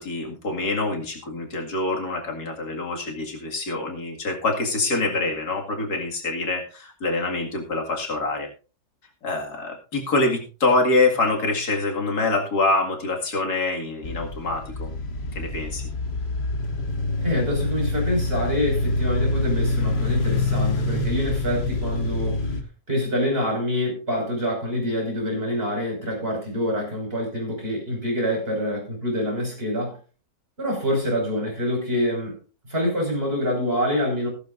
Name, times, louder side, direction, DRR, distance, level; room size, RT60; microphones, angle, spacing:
voice 1, 0.0-8.5 9.2-14.9 15.4-15.8, left 2 dB, 85° left, 2 dB, 2.7 m, -25 dB
sound 1, 14.0-22.6, left 2 dB, 45° left, 1.3 m, -26 dB
voice 2, 17.2-22.4 22.9-30.0 30.6-32.3 32.6-34.3, left 1 dB, 40° right, 0 dB, 6.1 m, -26 dB
15.0 x 13.5 x 2.6 m, 0.35 s
omnidirectional pair, 1.6 m